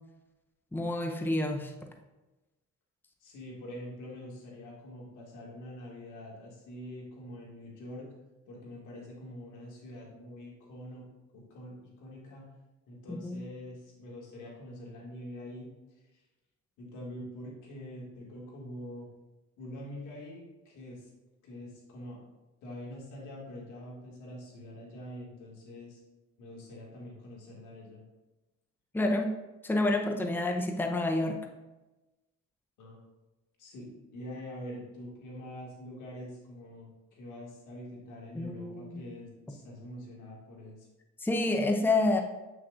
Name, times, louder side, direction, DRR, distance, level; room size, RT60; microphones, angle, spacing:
voice 1, 0.7-1.7 13.1-13.4 28.9-29.3 29.6-31.4 38.3-39.0 41.2-42.2, left 2 dB, 5° left, 3 dB, 0.7 m, -28 dB
voice 2, 3.2-8.1 8.5-11.1 11.3-12.5 12.9-16.2 16.8-19.1 19.6-21.1 21.4-22.2 22.6-26.0 26.4-28.0 32.8-33.0 33.6-40.9, left 1 dB, 90° left, -3 dB, 2.0 m, -45 dB
7.5 x 6.2 x 2.5 m, 1.1 s
cardioid pair, 90°, 30 cm